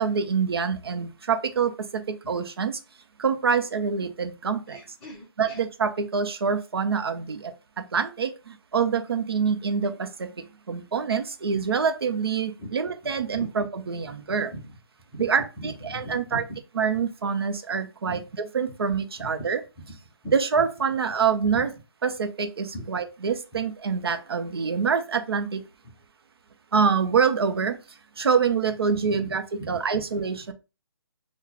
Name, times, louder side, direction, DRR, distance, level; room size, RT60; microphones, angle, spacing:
voice 1, 0.0-2.8 3.2-4.8 5.4-10.3 10.7-14.5 15.2-16.4 16.8-18.2 18.5-19.6 20.3-21.7 22.0-25.7 26.7-27.8 28.2-30.5, right 6 dB, 85° right, 0.6 m, -26 dB
voice 2, 4.7-5.6 12.6-12.7 13.3-13.5 14.5-14.8 15.1-15.3 15.6-16.6 18.1-18.2 19.2-19.3 20.2-20.3 21.5-21.7 22.7-22.8 23.5-23.6 29.2-29.3 29.6-30.1, equal, 5° left, 0.5 m, -39 dB
3.8 x 2.1 x 2.8 m
hypercardioid pair, 175°, 13 cm